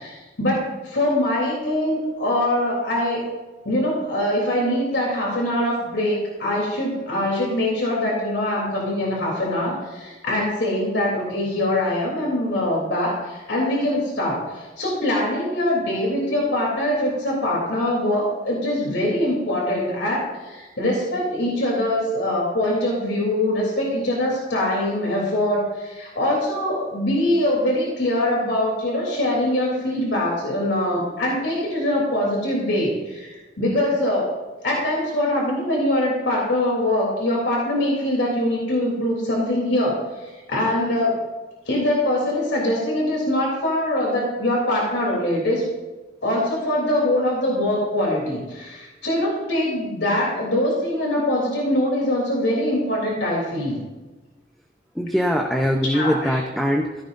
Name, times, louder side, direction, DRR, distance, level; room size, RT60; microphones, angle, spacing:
voice 1, 0.0-3.2 3.6-34.3 34.6-41.1 41.6-45.7 46.2-53.8 55.9-56.4, left 1 dB, 85° left, -3 dB, 3.5 m, -23 dB
voice 2, 54.9-57.0, equal, ahead, 1 dB, 0.8 m, -22 dB
16.5 x 15.0 x 2.7 m, 1.2 s
head